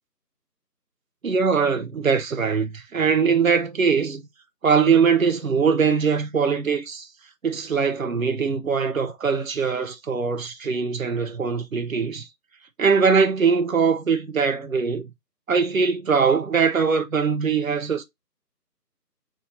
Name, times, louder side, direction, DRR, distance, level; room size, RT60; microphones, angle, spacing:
voice 1, 1.2-4.2 4.6-7.1 7.4-12.3 12.8-15.0 15.5-18.0, right 5 dB, 55° right, 0.7 m, -21 dB
2.8 x 2.8 x 4.0 m
figure-of-eight pair, 170°, 50 cm